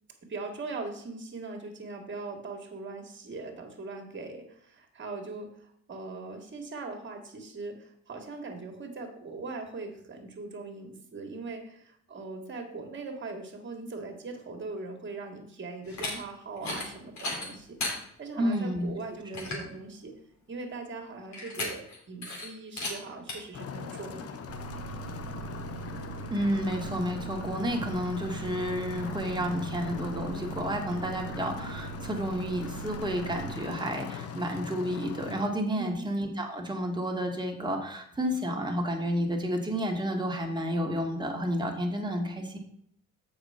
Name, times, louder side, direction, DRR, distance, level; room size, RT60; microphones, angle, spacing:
voice 1, 0.2-17.8 18.2-20.1 20.5-24.5 35.7-36.1, right 3 dB, 40° right, 4 dB, 1.9 m, -40 dB
sound 1, 15.8-16.1 16.6-16.9 17.2-18.0 18.5-18.6 19.0-19.1 19.3-19.7 21.3-22.0 22.2-22.5 22.8-22.9 23.3-23.4, left 2 dB, 70° left, 2.9 m, -34 dB
voice 2, 18.4-18.9 26.3-42.6, equal, 15° right, 1 dB, 1.8 m, -31 dB
sound 2, 23.5-35.5, left 6 dB, 50° left, 0.8 m, -40 dB
Engine, 24.5-33.6, right 5 dB, 55° right, 0.9 m, -41 dB
7.1 x 5.6 x 5.1 m, 0.68 s
cardioid pair, 90°, 30 cm